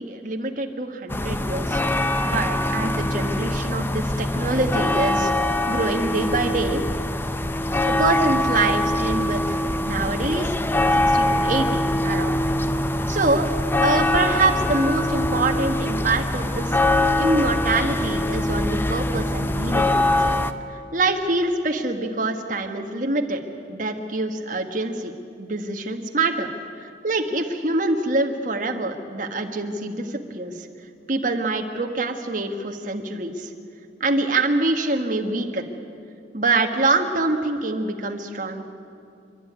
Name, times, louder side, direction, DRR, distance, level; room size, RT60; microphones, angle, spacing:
voice 1, 0.0-1.8 2.2-6.8 7.9-10.5 10.9-12.4 13.1-13.5 13.8-16.8 17.2-20.3 20.7-23.4 23.7-25.1 25.4-26.5 26.8-30.7 31.1-33.5 34.0-35.7 36.3-38.6, right 2 dB, 45° right, 4 dB, 1.6 m, -25 dB
sound 1, 1.1-20.5, left 1 dB, 10° left, 0.6 m, -23 dB
28.0 x 12.0 x 9.5 m, 2.5 s
head